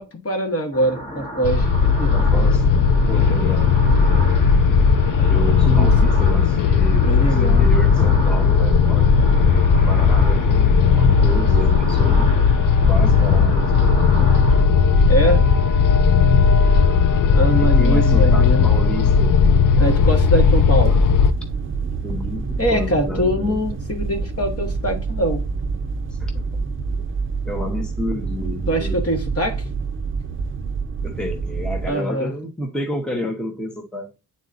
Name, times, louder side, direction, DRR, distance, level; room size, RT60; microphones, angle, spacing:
voice 1, 0.0-1.7 2.0-2.1 5.6-5.9 7.0-7.7 15.1-15.4 17.3-18.7 19.8-20.9 22.6-25.4 28.7-29.6 31.9-32.3, right 1 dB, 40° left, 1.5 m, -23 dB
sound 1, 0.7-14.6, equal, 20° left, 1.4 m, -33 dB
sound 2, 1.4-21.3, left 5 dB, 55° left, 0.6 m, -16 dB
voice 2, 2.1-2.7 3.0-3.7 5.3-12.3 12.9-14.0 17.5-19.4 22.0-23.6 26.1-26.4 27.5-29.0 31.0-34.2, left 1 dB, ahead, 1.0 m, -30 dB
sound 3, 19.8-31.9, right 4 dB, 35° right, 0.6 m, -27 dB
9.1 x 4.1 x 2.5 m
wide cardioid pair, 125°, 38 cm